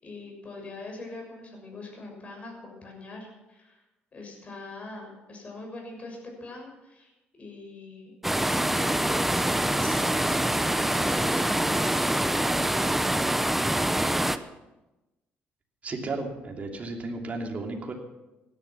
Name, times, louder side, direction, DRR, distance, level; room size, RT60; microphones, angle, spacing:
voice 1, 0.0-3.8 4.1-7.1 7.4-8.1 8.5-12.8, left 2 dB, 35° left, 1 dB, 6.6 m, -42 dB
sound 1, 8.2-14.4, right 1 dB, 5° right, 0.7 m, -25 dB
voice 2, 15.8-17.9, right 3 dB, 35° right, 2 dB, 2.9 m, -34 dB
16.5 x 11.5 x 6.2 m, 1.0 s
cardioid pair, 110°, 4 cm